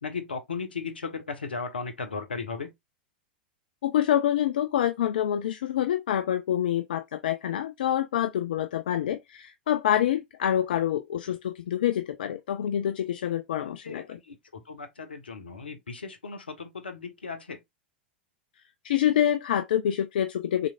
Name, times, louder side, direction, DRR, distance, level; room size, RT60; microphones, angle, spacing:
voice 1, 0.0-2.7 13.6-17.6, left 5 dB, 80° left, 1.3 m, -36 dB
voice 2, 3.8-14.2 18.8-20.7, left 10 dB, 65° left, 0.5 m, -26 dB
6.6 x 3.3 x 2.4 m
figure-of-eight pair, 95°, 5 cm